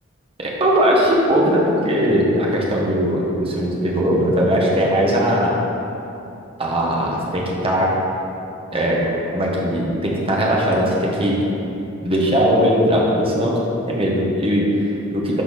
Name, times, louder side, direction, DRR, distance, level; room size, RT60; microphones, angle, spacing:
voice 1, 0.4-5.5 6.6-7.9 8.7-9.0 9.3-11.4 12.0-13.5 13.8-15.4, equal, 25° right, -3 dB, 1.3 m, -19 dB
11.5 x 4.3 x 4.1 m, 2.9 s
head